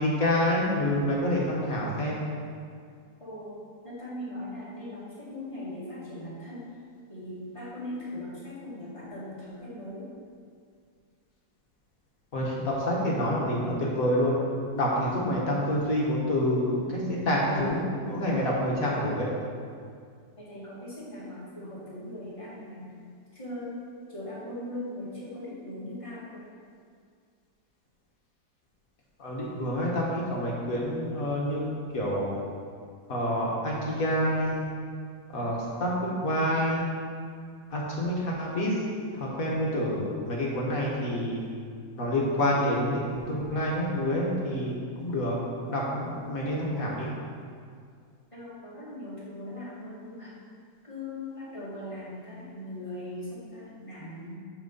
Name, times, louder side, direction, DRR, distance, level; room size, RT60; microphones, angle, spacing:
voice 1, 0.0-2.2 12.3-14.4 14.7-19.3 29.2-32.4 33.1-34.7 35.3-36.9 37.7-38.8 39.1-41.5 42.0-45.4 45.7-47.1, equal, 55° left, -4 dB, 1.6 m, -27 dB
voice 2, 3.2-3.5 3.8-6.7 7.1-10.1 20.3-22.9 23.3-23.8 24.1-26.4 48.3-50.3 50.8-54.3, left 1 dB, 20° left, -9 dB, 1.9 m, -39 dB
6.2 x 6.1 x 5.4 m, 2.2 s
omnidirectional pair, 1.9 m